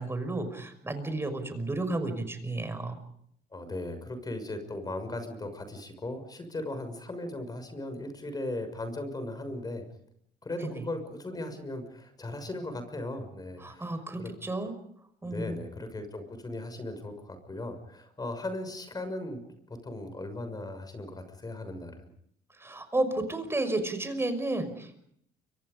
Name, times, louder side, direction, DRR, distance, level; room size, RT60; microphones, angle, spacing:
voice 1, 0.0-3.0 10.5-10.8 13.6-14.7 15.2-15.6 22.6-25.0, right 2 dB, 15° right, 9 dB, 5.7 m, -32 dB
voice 2, 3.5-9.8 10.4-14.3 15.2-19.4 19.7-22.1, left 2 dB, 20° left, 9 dB, 6.3 m, -37 dB
29.5 x 25.0 x 5.3 m, 0.69 s
cardioid pair, 110°, 17 cm